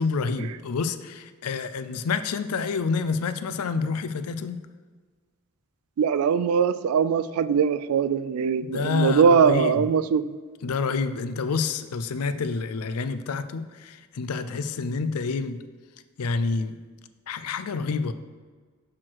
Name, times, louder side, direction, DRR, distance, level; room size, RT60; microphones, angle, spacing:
voice 1, 0.0-4.6 8.6-9.9 10.6-15.6 16.2-16.8 17.3-18.1, left 4 dB, 75° left, 11 dB, 0.5 m, -28 dB
voice 2, 6.0-10.3, right 6 dB, 70° right, 15 dB, 0.3 m, -21 dB
6.2 x 5.9 x 4.6 m, 1.5 s
head